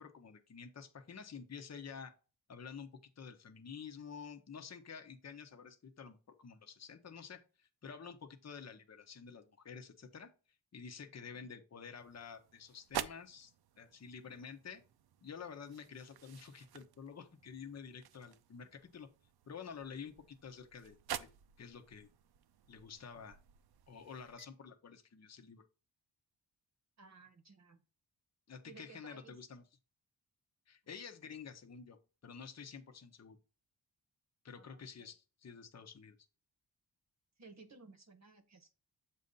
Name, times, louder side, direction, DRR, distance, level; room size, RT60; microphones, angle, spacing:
voice 1, 0.0-2.1 2.5-10.3 10.7-13.5 13.8-14.8 15.2-19.1 19.5-21.0 21.6-22.1 22.7-23.4 23.9-25.6 28.5-29.6 30.7-32.0 32.2-33.4 34.4-36.2, left 6 dB, 40° left, 5 dB, 1.0 m, -50 dB
sound 1, 12.0-24.5, right 10 dB, 65° right, 0.6 m, -49 dB
voice 2, 27.0-27.8 28.7-29.4 34.6-35.1 37.4-38.7, right 4 dB, 40° right, 6 dB, 1.0 m, -58 dB
7.3 x 2.7 x 5.2 m, 0.35 s
cardioid pair, 80°, 41 cm